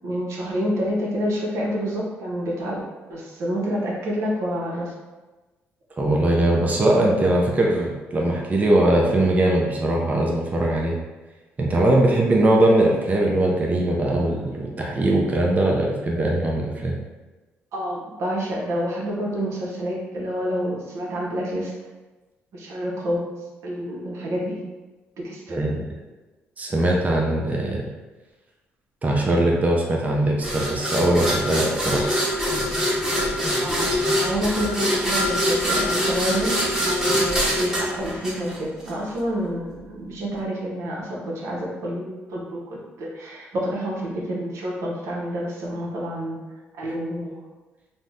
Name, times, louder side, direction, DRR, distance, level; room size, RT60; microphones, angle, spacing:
voice 1, 0.0-2.8 3.1-4.9 17.7-21.7 22.5-23.4 23.6-24.6 25.2-25.7 33.6-46.4 46.8-47.4, equal, 70° right, -3 dB, 0.7 m, -28 dB
voice 2, 6.0-11.0 11.6-16.9 25.5-25.8 26.6-27.9 29.0-32.1, right 1 dB, 30° right, -1 dB, 0.5 m, -21 dB
sound 1, 30.4-38.9, equal, 10° right, 1.0 m, -24 dB
2.6 x 2.0 x 3.5 m, 1.2 s
supercardioid pair, 65°, 5 cm